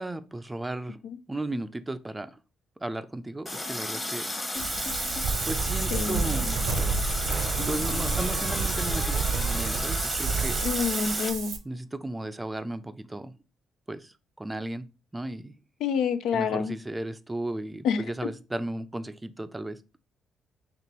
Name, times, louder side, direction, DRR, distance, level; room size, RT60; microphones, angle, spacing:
voice 1, 0.0-1.0 1.3-2.4 2.8-4.3 5.4-6.7 7.6-10.6 11.6-13.4 13.9-15.5 16.3-19.8, right 1 dB, 15° right, 0.4 m, -35 dB
Water tap faucet, 3.5-11.3, left 1 dB, 15° left, 0.9 m, -33 dB
sound 1, 4.5-5.4 7.3-10.9, left 3 dB, 35° left, 1.3 m, -42 dB
Wind, 4.6-11.6, right 5 dB, 70° right, 0.6 m, -29 dB
voice 2, 5.9-6.3 10.6-11.6 15.8-16.8 17.8-18.0, left 6 dB, 80° left, 0.3 m, -27 dB
4.3 x 3.0 x 3.0 m
supercardioid pair, 70°, 0 cm